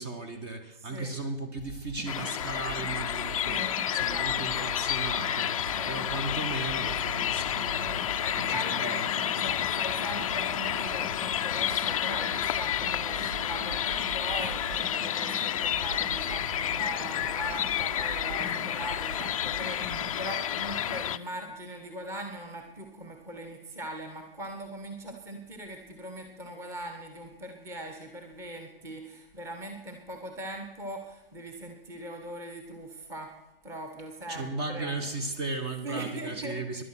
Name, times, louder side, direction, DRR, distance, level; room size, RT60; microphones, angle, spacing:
voice 1, 0.0-5.6 5.9-9.0 34.3-36.8, right 2 dB, 25° right, 7 dB, 1.5 m, -36 dB
voice 2, 0.8-1.1 3.4-4.7 5.7-5.9 7.8-9.0 9.4-33.3 33.6-34.9 35.8-36.8, right 1 dB, 10° right, 4 dB, 1.4 m, -40 dB
sound 1, 1.6-20.2, right 2 dB, 65° right, 4.4 m, -43 dB
sound 2, 2.1-21.2, left 10 dB, 35° left, 0.5 m, -30 dB
16.5 x 11.5 x 6.0 m, 1.0 s
hypercardioid pair, 155°, 29 cm